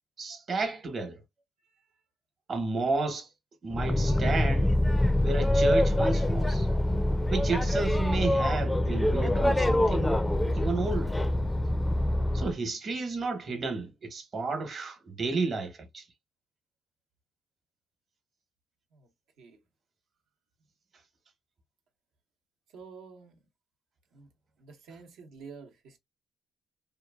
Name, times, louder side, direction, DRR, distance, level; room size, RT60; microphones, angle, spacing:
voice 1, 0.2-1.2 2.5-3.3 3.6-4.7 5.2-6.7 7.3-10.2 10.5-11.1 12.3-16.0, right 3 dB, 50° right, 1.1 m, -32 dB
Boat Water vehicle, 3.7-12.5, left 1 dB, 10° left, 0.4 m, -25 dB
voice 2, 22.7-23.4 24.1-24.3 24.6-26.0, right 5 dB, 85° right, 0.9 m, -49 dB
2.8 x 2.5 x 2.3 m
cardioid pair, 90°, 0 cm